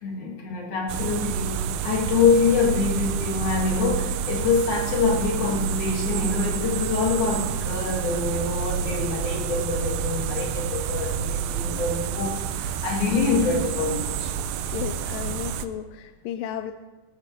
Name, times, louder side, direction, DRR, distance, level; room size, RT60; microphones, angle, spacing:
voice 1, 0.0-14.4, left 4 dB, 55° left, -2 dB, 3.9 m, -25 dB
sound 1, 0.9-15.7, right 7 dB, 80° right, 2.4 m, -29 dB
voice 2, 14.7-16.7, left 10 dB, 80° left, 8 dB, 2.1 m, -33 dB
20.0 x 12.5 x 3.5 m, 1.2 s
omnidirectional pair, 4.3 m